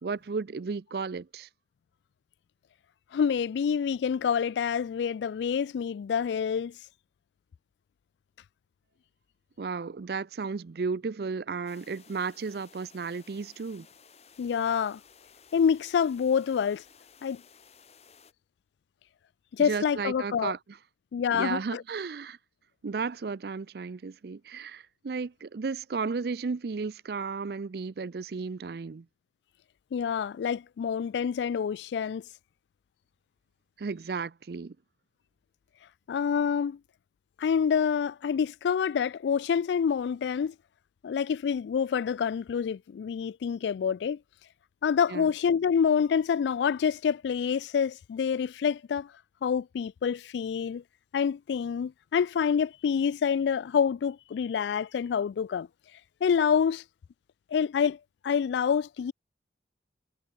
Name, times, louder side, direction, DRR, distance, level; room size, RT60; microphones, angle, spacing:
voice 1, 0.0-1.5 9.6-13.9 19.6-20.6 21.3-22.4 22.8-29.1 33.8-34.8 45.1-45.3, right 4 dB, 60° right, 0.5 m, -34 dB
voice 2, 3.1-6.8 14.4-15.0 15.5-16.8 17.2-17.4 19.5-20.5 21.1-21.8 29.9-32.2 36.1-36.8 37.4-40.5 41.0-44.2 44.8-49.1 49.4-50.8 51.1-55.7 56.2-56.8 57.5-59.1, left 7 dB, 75° left, 0.3 m, -27 dB
sound 1, 11.7-18.3, left 6 dB, 35° left, 1.7 m, -57 dB
head